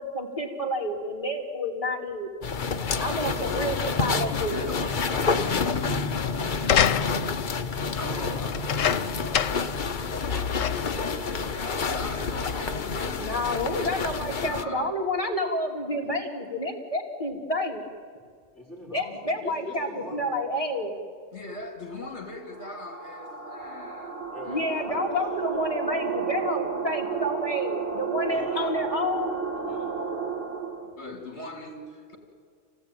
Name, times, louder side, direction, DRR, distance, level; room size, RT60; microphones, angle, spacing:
voice 1, 0.0-2.3 3.0-4.6 13.2-17.8 18.9-20.9 24.5-29.4, left 1 dB, 25° left, 0 dB, 3.0 m, -29 dB
sound 1, 2.4-14.6, left 5 dB, 45° left, 1.0 m, -28 dB
voice 2, 2.7-4.3 8.0-9.7 10.2-11.9 12.2-12.7 15.8-15.9 18.5-20.3 24.3-25.7 28.3-28.9 29.5-30.1, left 1 dB, ahead, -8 dB, 5.4 m, -43 dB
voice 3, 4.5-6.1 7.9-8.2 11.4-13.2 14.4-14.9 21.3-24.7 28.6-28.7 30.8-32.2, left 2 dB, 60° left, 2 dB, 3.1 m, -39 dB
sound 2, 6.6-7.4 8.5-9.8 10.1-10.2 10.6-11.0 11.8-11.9, left 9 dB, 90° left, 1.2 m, -26 dB
sound 3, 22.5-30.9, right 6 dB, 45° right, 2.2 m, -32 dB
27.5 x 17.5 x 9.2 m, 2.1 s
omnidirectional pair, 1.3 m